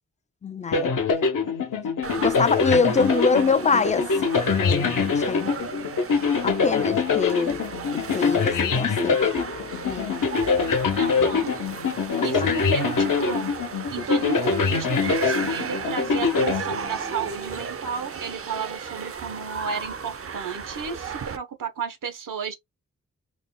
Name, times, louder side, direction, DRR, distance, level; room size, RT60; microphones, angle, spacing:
voice 1, 0.4-1.0 2.2-4.1 4.5-5.5 6.4-7.6 7.9-9.2 9.9-10.1 11.2-11.3 12.2-12.5, left 5 dB, 25° left, 0.3 m, -25 dB
sound 1, 0.7-17.3, left 5 dB, 80° left, 0.9 m, -24 dB
sound 2, 2.0-21.4, right 6 dB, 45° right, 0.5 m, -35 dB
voice 2, 11.0-11.6 12.0-13.5 13.9-22.6, right 5 dB, 80° right, 0.9 m, -32 dB
2.6 x 2.2 x 3.6 m
wide cardioid pair, 80°, 32 cm